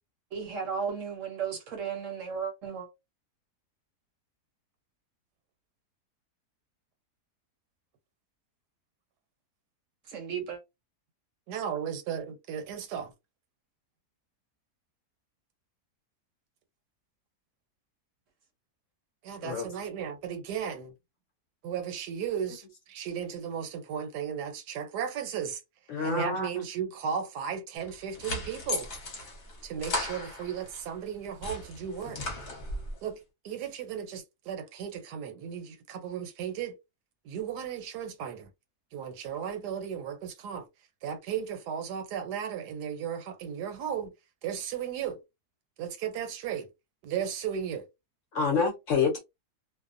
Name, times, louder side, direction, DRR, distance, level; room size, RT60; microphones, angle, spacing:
voice 1, 0.3-2.9 10.1-10.6, right 6 dB, 65° right, 0.9 m, -34 dB
voice 2, 11.5-13.1 19.2-20.9 21.6-25.6 26.0-28.9 29.6-32.2 33.0-33.2 33.4-36.8 37.2-38.5 38.9-40.7 41.0-44.1 44.4-45.2 45.8-46.7 47.0-47.9, right 8 dB, 85° right, 1.2 m, -35 dB
voice 3, 25.9-26.7 48.3-49.2, left 5 dB, 65° left, 0.8 m, -27 dB
sound 1, 27.8-30.8 31.2-33.0, left 2 dB, 45° left, 1.0 m, -36 dB
2.6 x 2.1 x 2.4 m
omnidirectional pair, 1.7 m